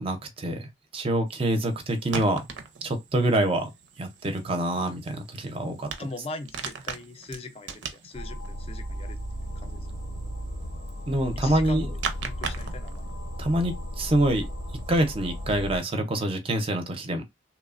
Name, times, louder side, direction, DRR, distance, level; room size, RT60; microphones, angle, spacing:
voice 1, 0.0-2.4 2.8-3.7 4.0-5.9 11.1-11.9 13.4-14.5 14.9-17.2, right 1 dB, 30° right, 0.5 m, -26 dB
sound 1, 1.3-15.9, right 5 dB, 85° right, 0.5 m, -41 dB
voice 2, 6.0-9.9 11.4-12.0 12.2-13.1, left 2 dB, 30° left, 0.4 m, -40 dB
sound 2, 8.1-15.8, equal, 75° left, 0.7 m, -35 dB
3.0 x 2.0 x 2.4 m
head